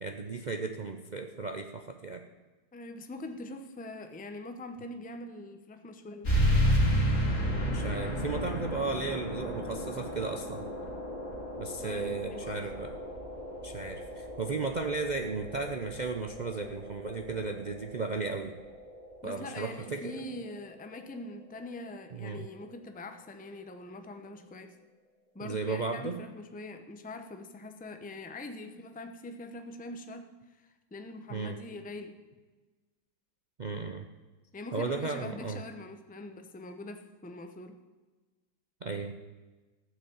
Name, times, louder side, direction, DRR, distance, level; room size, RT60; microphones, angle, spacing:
voice 1, 0.0-2.2 7.4-10.7 11.6-12.9 13.6-18.5 19.2-20.2 22.1-22.5 25.4-26.2 31.3-31.6 33.6-34.1 34.7-35.6 38.8-39.1, right 4 dB, 70° right, 4 dB, 0.4 m, -35 dB
voice 2, 2.7-6.3 11.8-12.6 19.2-24.8 25.3-30.3 30.9-32.2 34.5-37.8, left 2 dB, 10° left, 7 dB, 0.4 m, -43 dB
sound 1, 6.2-21.3, equal, 45° left, 3.5 m, -33 dB
15.0 x 6.4 x 8.5 m, 1.3 s
omnidirectional pair, 1.9 m